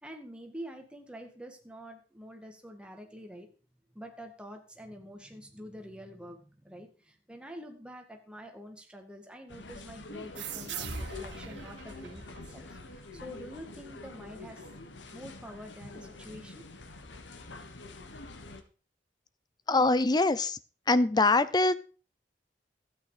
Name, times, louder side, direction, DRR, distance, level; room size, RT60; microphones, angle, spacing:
voice 1, 0.0-3.5 3.9-14.7 15.1-16.6, equal, 5° right, 3 dB, 2.0 m, -47 dB
sound 1, 9.5-18.6, left 3 dB, 85° left, 1.4 m, -46 dB
sound 2, 10.4-13.6, right 5 dB, 90° right, 1.9 m, -41 dB
voice 2, 19.7-20.6 20.9-21.7, left 3 dB, 25° left, 15 dB, 0.6 m, -23 dB
12.5 x 8.9 x 5.0 m, 0.38 s
head